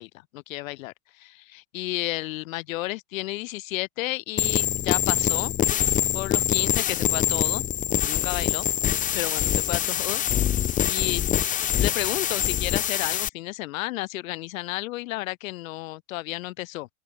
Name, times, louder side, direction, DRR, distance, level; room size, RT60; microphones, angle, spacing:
voice 1, 0.0-5.5 6.1-7.6 8.0-8.7 9.1-10.2 10.9-11.2 11.8-16.9, left 19 dB, 80° left, 1.9 m, -32 dB
sound 1, 4.4-13.3, left 10 dB, 20° left, 1.0 m, -24 dB
open air
supercardioid pair, 165°, 40 cm